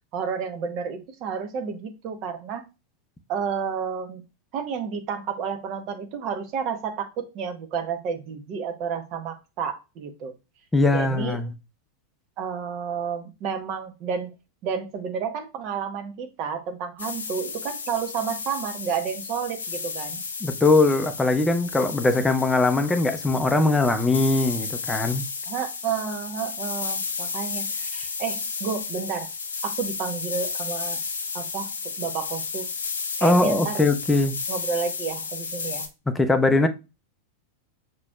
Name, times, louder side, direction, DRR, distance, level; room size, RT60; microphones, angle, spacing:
voice 1, 0.1-2.7 3.3-4.2 4.5-10.3 10.9-11.4 12.4-14.3 14.6-20.2 25.5-29.3 29.6-31.0 31.3-31.7 32.0-32.7 33.2-33.8 34.5-35.9, right 6 dB, 40° right, 0.9 m, -31 dB
voice 2, 10.7-11.5 20.4-25.2 33.2-34.3 36.1-36.7, left 2 dB, 10° left, 0.6 m, -21 dB
sound 1, 17.0-35.9, left 5 dB, 70° left, 0.6 m, -33 dB
5.9 x 3.0 x 2.3 m
figure-of-eight pair, 90°, 0 cm